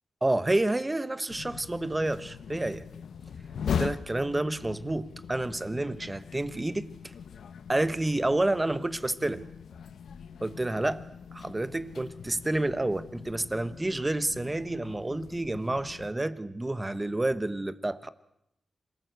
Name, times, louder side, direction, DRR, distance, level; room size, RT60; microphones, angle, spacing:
voice 1, 0.2-2.8 3.7-6.9 7.7-9.4 10.4-11.0 11.3-18.1, right 2 dB, 15° right, 14 dB, 1.1 m, -29 dB
sound 1, 1.3-16.1, left 7 dB, 85° left, 0.9 m, -40 dB
26.5 x 18.5 x 8.2 m, 0.83 s
wide cardioid pair, 110°, 0 cm